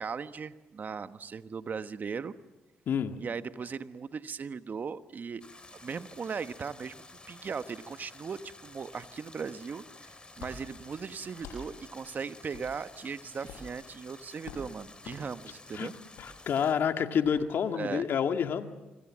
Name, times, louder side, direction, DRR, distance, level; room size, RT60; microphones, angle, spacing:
voice 1, 0.0-2.3 3.2-5.4 5.8-6.9 7.3-10.1 10.4-15.9 17.7-18.0, right 5 dB, 50° right, 11 dB, 1.2 m, -38 dB
sound 1, 5.4-16.7, left 2 dB, 25° left, 4.7 m, -52 dB
sound 2, 10.4-10.6 11.3-11.6 12.5-12.7 13.4-13.7 14.4-14.6 15.0-15.2 16.1-16.3 17.2-17.4, left 5 dB, 85° left, 7.2 m, -45 dB
voice 2, 16.2-18.7, left 7 dB, 65° left, 6 dB, 1.9 m, -28 dB
27.5 x 25.5 x 7.5 m, 1.1 s
supercardioid pair, 60°, 4 cm